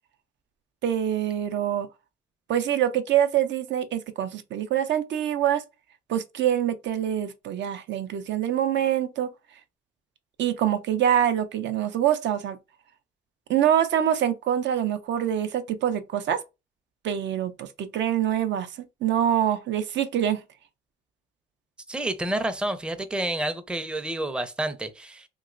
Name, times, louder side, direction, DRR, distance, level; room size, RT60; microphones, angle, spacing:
voice 1, 0.8-1.9 2.5-5.6 6.1-9.3 10.4-12.6 13.5-16.4 17.0-20.4, right 10 dB, 65° right, 0.4 m, -25 dB
voice 2, 21.9-25.3, right 1 dB, 5° right, 0.4 m, -29 dB
2.9 x 2.9 x 2.5 m
cardioid pair, 90°, 20 cm